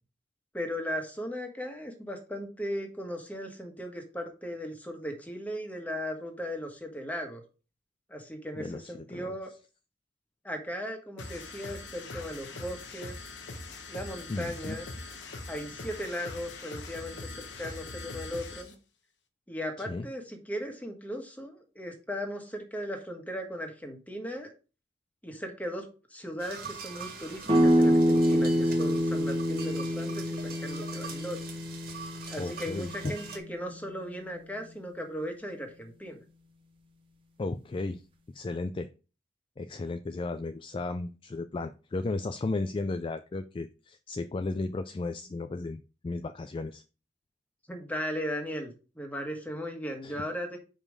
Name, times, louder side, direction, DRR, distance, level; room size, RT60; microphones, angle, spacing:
voice 1, 0.5-7.4 8.1-9.5 10.4-13.2 13.9-14.9 15.5-18.7 19.5-24.5 25.2-31.4 32.3-36.2 47.7-50.6, equal, 10° left, 4 dB, 1.3 m, -37 dB
voice 2, 8.6-9.3 14.3-14.8 19.8-20.1 32.4-33.2 37.4-38.0 38.3-38.9 39.6-46.8 50.0-50.2, left 3 dB, 30° left, 9 dB, 0.3 m, -34 dB
sound 1, 11.2-18.7, left 3 dB, 90° left, 1.1 m, -42 dB
sound 2, 26.4-33.4, right 5 dB, 55° right, 1.8 m, -43 dB
sound 3, 27.5-33.1, equal, 30° right, 1.2 m, -26 dB
5.3 x 5.0 x 4.8 m, 0.34 s
head